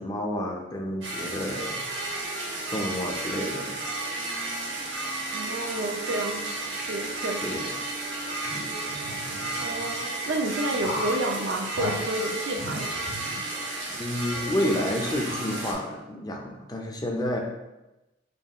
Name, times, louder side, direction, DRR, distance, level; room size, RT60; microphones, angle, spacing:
voice 1, 0.0-1.8 2.7-3.8 7.4-7.6 13.9-17.4, left 1 dB, 20° left, 1 dB, 0.4 m, -30 dB
sound 1, 1.0-15.7, right 2 dB, 80° right, 1.0 m, -33 dB
sound 2, 1.9-12.5, right 3 dB, 55° left, 0.8 m, -47 dB
voice 2, 5.3-7.7 9.6-12.9, right 1 dB, 65° right, 3 dB, 0.5 m, -30 dB
sound 3, 8.4-9.9 10.8-11.2 11.7-11.9 12.5-13.8 14.3-14.4 15.1-16.0, left 1 dB, 75° left, 1.3 m, -37 dB
5.1 x 2.3 x 2.9 m, 1.0 s
head